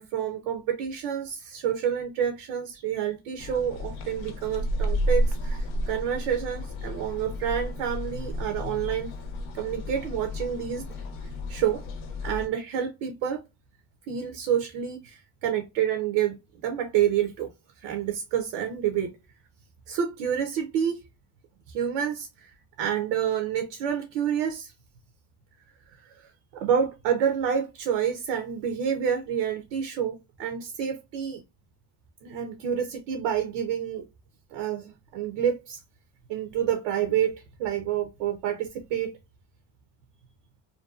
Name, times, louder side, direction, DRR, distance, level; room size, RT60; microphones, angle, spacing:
voice 1, 0.0-9.1 9.5-10.8 11.5-11.8 12.2-13.4 14.1-16.4 16.6-17.5 17.8-19.1 19.9-21.0 21.7-24.7 25.9-31.4 32.2-34.0 34.5-35.8 36.3-39.1, right 9 dB, 90° right, 0.6 m, -28 dB
sound 1, 3.4-12.5, equal, 80° left, 0.7 m, -31 dB
2.5 x 2.3 x 2.3 m
supercardioid pair, 60°, 47 cm